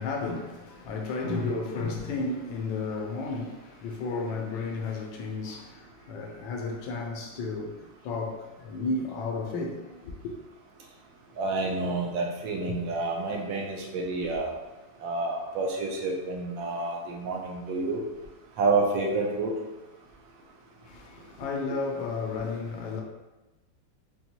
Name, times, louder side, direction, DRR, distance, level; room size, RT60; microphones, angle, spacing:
voice 1, 0.0-10.3 20.8-23.0, left 3 dB, 85° left, 1.4 m, -33 dB
voice 2, 11.4-14.5 15.0-18.0 18.6-19.5, right 3 dB, 80° right, 1.4 m, -29 dB
5.4 x 2.3 x 2.9 m
omnidirectional pair, 2.1 m